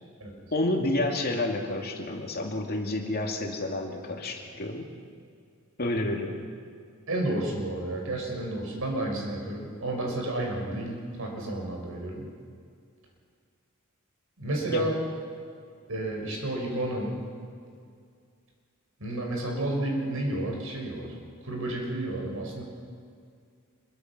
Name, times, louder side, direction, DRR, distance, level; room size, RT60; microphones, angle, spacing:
voice 1, 0.5-4.9 5.8-6.5 14.7-14.9, left 1 dB, 45° left, 2 dB, 2.7 m, -29 dB
voice 2, 7.1-12.3 14.4-15.0 15.9-17.2 19.0-21.1 21.4-22.6, right 1 dB, 70° right, 1 dB, 6.0 m, -31 dB
26.0 x 23.0 x 6.2 m, 2.2 s
head